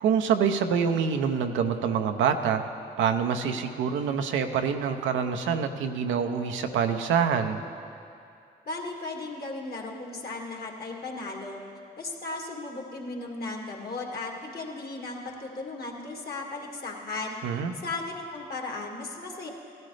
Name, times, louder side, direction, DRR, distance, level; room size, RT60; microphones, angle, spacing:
voice 1, 0.0-2.6 3.0-7.6 17.4-17.7, right 7 dB, 85° right, 6 dB, 0.7 m, -26 dB
voice 2, 8.7-11.6 12.0-17.4 17.8-19.5, left 3 dB, 55° left, 0 dB, 2.1 m, -36 dB
16.5 x 12.0 x 3.3 m, 2.5 s
supercardioid pair, 45°, 19 cm